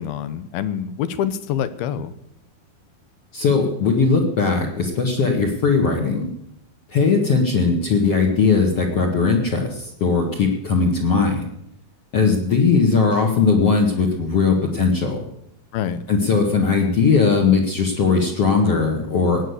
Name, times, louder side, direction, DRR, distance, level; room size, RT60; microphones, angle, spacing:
voice 1, 0.0-2.1 15.7-16.0, left 9 dB, 85° left, 13 dB, 2.7 m, -26 dB
voice 2, 3.3-6.3 6.9-11.5 12.1-15.2 16.1-19.4, left 4 dB, 50° left, 0 dB, 2.2 m, -19 dB
17.5 x 9.1 x 8.2 m, 0.75 s
omnidirectional pair, 4.3 m